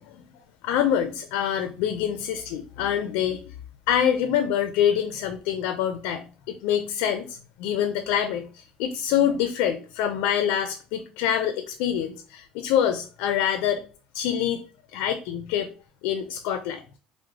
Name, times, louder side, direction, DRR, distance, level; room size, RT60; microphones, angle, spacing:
voice 1, 0.6-3.4 3.9-13.8 14.1-14.6 14.9-15.7 16.0-16.8, left 9 dB, 85° left, 8 dB, 0.4 m, -25 dB
3.1 x 2.0 x 3.5 m, 0.36 s
cardioid pair, 135°, 3 cm